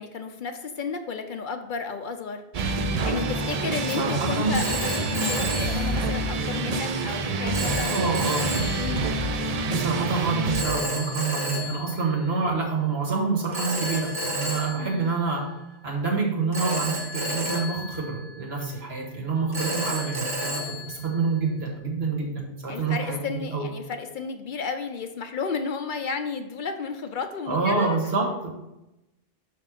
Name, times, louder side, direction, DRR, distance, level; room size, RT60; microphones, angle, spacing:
voice 1, 0.0-2.4 3.0-8.0 8.8-9.1 14.8-15.1 22.7-28.0, left 5 dB, 60° left, 7 dB, 0.6 m, -32 dB
sound 1, 2.5-10.6, right 2 dB, 50° right, 0.5 m, -27 dB
voice 2, 3.9-4.6 7.9-8.5 9.6-15.4 15.8-23.7 27.5-28.5, right 4 dB, 75° right, -2 dB, 1.8 m, -27 dB
Telephone, 4.5-6.5 7.5-9.3 10.5-12.7 13.5-15.9 16.5-18.8 19.5-21.7, right 1 dB, 20° right, 1.3 m, -32 dB
6.2 x 4.2 x 5.1 m, 0.93 s
omnidirectional pair, 1.1 m